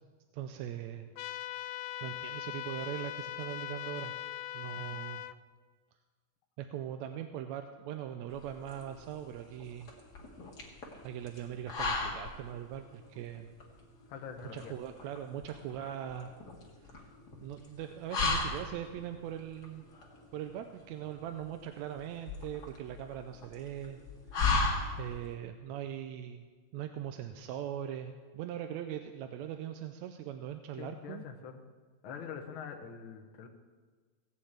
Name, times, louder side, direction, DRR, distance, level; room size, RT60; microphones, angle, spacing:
voice 1, 0.3-1.1 1.5-4.1 4.5-5.2 6.6-9.9 11.0-13.5 14.5-16.3 16.8-17.1 17.4-19.9 20.3-24.0 25.0-26.4 26.7-31.3, right 10 dB, 80° right, 7 dB, 1.9 m, -41 dB
sound 1, 1.2-5.3, left 13 dB, 80° left, 1.5 m, -40 dB
sound 2, 8.3-25.3, left 3 dB, 35° left, 2.2 m, -37 dB
voice 2, 14.1-14.8 30.8-31.6 32.0-33.5, left 7 dB, 55° left, 4 dB, 1.6 m, -44 dB
17.0 x 6.6 x 8.7 m, 1.5 s
omnidirectional pair, 3.4 m